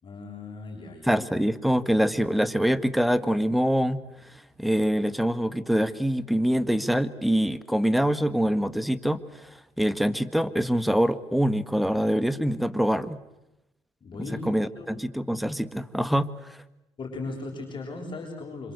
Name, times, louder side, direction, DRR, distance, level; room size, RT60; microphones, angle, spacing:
voice 1, 0.0-1.1 14.0-14.4 14.8-14.9 17.0-18.7, left 3 dB, 45° left, 2 dB, 7.5 m, -37 dB
voice 2, 1.0-4.0 4.6-9.5 9.8-13.2 14.2-16.6, equal, ahead, 13 dB, 1.7 m, -25 dB
27.5 x 26.0 x 8.2 m, 0.91 s
cardioid pair, 85°, 11 cm